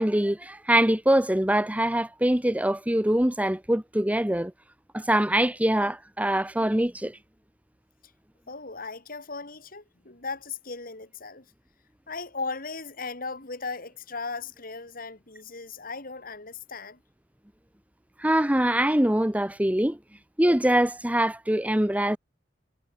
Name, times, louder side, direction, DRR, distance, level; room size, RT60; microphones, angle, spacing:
voice 1, 0.0-4.5 4.9-7.2 18.2-20.0 20.4-22.2, right 1 dB, 10° right, 1.1 m, -23 dB
voice 2, 8.5-11.5 12.1-17.0, left 4 dB, 50° left, 3.6 m, -37 dB
head